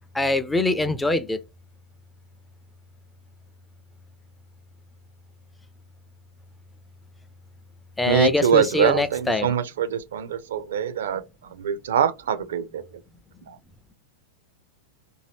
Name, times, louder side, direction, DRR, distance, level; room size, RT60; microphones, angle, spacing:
voice 1, 0.1-1.4 8.0-9.5, left 2 dB, 5° left, 0.4 m, -23 dB
voice 2, 8.1-13.0 13.5-13.6, right 8 dB, 65° right, 0.4 m, -24 dB
2.7 x 2.7 x 3.0 m
figure-of-eight pair, 95°, 0 cm